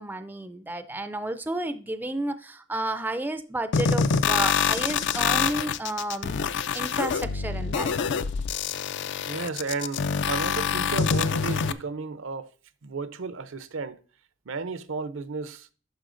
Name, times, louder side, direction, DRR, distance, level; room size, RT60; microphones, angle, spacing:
voice 1, 0.0-6.3 6.7-7.9, right 1 dB, 10° right, 0.4 m, -31 dB
sound 1, 3.7-11.7, left 6 dB, 60° left, 0.4 m, -26 dB
voice 2, 9.2-12.5 12.8-14.0 14.5-15.7, right 4 dB, 75° right, 0.6 m, -33 dB
11.5 x 5.4 x 2.5 m
head